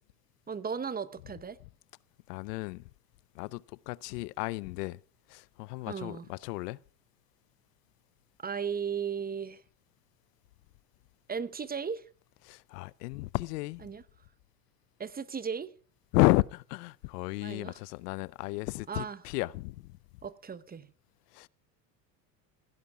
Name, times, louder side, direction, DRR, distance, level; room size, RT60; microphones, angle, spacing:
voice 1, 0.5-1.6 5.9-6.3 8.4-9.6 11.3-12.0 13.8-14.0 15.0-15.7 17.4-17.8 18.9-19.2 20.2-20.9, right 6 dB, 20° right, 0.8 m, -36 dB
voice 2, 2.3-2.8 3.3-5.0 5.3-6.8 12.4-13.9 16.1-20.0 21.3-21.5, left 22 dB, 85° left, 0.6 m, -32 dB
16.0 x 10.5 x 5.9 m
supercardioid pair, 95°, 47 cm